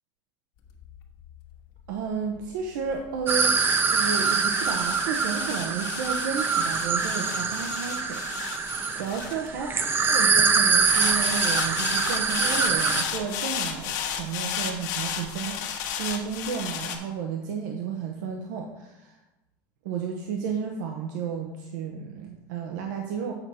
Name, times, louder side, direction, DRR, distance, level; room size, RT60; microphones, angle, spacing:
sound 1, 0.6-10.1 10.8-17.0, left 8 dB, 75° left, 1.4 m, -34 dB
voice 1, 1.9-3.6 3.9-9.7 10.1-19.2 19.8-23.3, right 6 dB, 80° right, 2 dB, 0.9 m, -32 dB
sound 2, 3.3-13.0, right 5 dB, 25° right, 0.6 m, -24 dB
7.8 x 4.3 x 6.3 m, 1.0 s
supercardioid pair, 145°, 10 cm